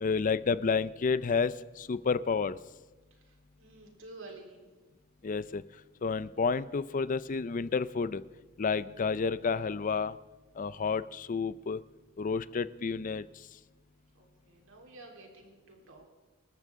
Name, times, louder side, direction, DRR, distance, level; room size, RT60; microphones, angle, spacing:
voice 1, 0.0-2.5 5.2-5.6 6.0-8.2 8.6-10.1 10.6-11.8 12.2-13.2, left 5 dB, 40° left, 16 dB, 0.4 m, -30 dB
voice 2, 3.1-4.6 14.1-16.1, right 2 dB, 65° right, 0 dB, 3.7 m, -51 dB
26.5 x 13.5 x 3.7 m, 1.3 s
head